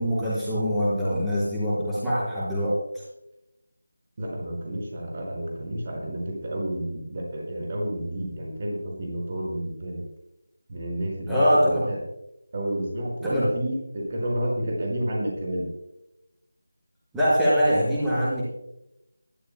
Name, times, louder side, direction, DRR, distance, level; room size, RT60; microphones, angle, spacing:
voice 1, 0.0-2.7 11.3-11.8 13.2-13.4 17.1-18.4, equal, 5° right, -10 dB, 4.9 m, -23 dB
voice 2, 4.2-10.0 10.7-12.0 12.5-15.7, right 1 dB, 35° right, -1 dB, 5.1 m, -30 dB
22.5 x 13.5 x 2.2 m, 0.89 s
figure-of-eight pair, 165°, 0 cm